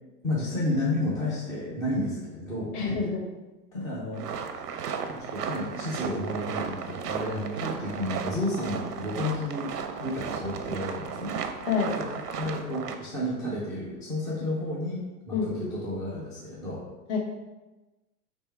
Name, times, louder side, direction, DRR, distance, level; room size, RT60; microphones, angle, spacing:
voice 1, 0.2-2.7 3.7-4.2 5.1-9.7 10.0-11.3 12.0-16.8, left 1 dB, 10° left, -6 dB, 0.3 m, -31 dB
voice 2, 2.7-3.2 11.7-11.9 15.3-15.7 17.1-17.2, left 5 dB, 50° left, -1 dB, 1.4 m, -27 dB
sound 1, 4.1-13.0, right 6 dB, 90° right, 0.6 m, -35 dB
3.5 x 3.3 x 4.5 m, 1.1 s
hypercardioid pair, 125°, 46 cm